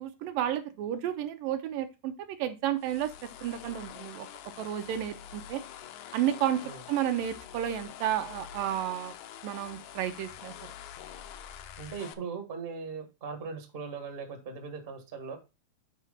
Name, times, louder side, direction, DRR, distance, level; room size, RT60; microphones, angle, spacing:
voice 1, 0.0-4.3 4.6-5.6 6.1-9.1 9.4-10.5, right 11 dB, 75° right, 8 dB, 2.3 m, -32 dB
sound 1, 2.8-12.1, left 10 dB, 80° left, 1.7 m, -46 dB
voice 2, 11.8-15.4, right 5 dB, 45° right, 4 dB, 0.7 m, -39 dB
7.7 x 4.9 x 5.0 m, 0.28 s
omnidirectional pair, 4.2 m